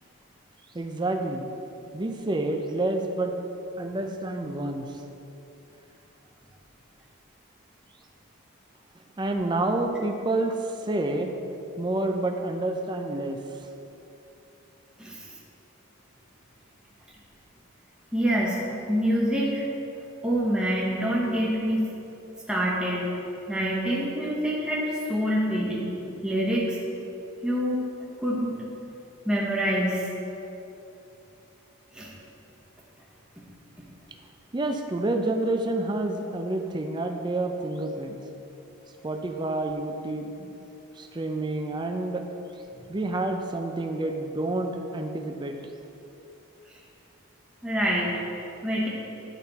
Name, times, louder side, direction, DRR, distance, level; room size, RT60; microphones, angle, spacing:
voice 1, 0.7-1.5 1.9-3.3 3.8-5.0 9.2-11.4 11.8-13.4 34.5-38.2 39.0-40.5 41.0-42.2 42.9-45.6, right 2 dB, 20° right, 5 dB, 0.4 m, -28 dB
voice 2, 15.0-15.3 18.1-18.6 18.9-19.6 20.2-21.9 22.5-23.1 23.5-25.9 26.2-26.8 27.4-27.8 28.2-28.5 29.2-30.1 31.9-32.1 46.7-46.8 47.6-48.9, equal, 5° right, -6 dB, 1.0 m, -26 dB
10.5 x 4.1 x 4.1 m, 2.9 s
head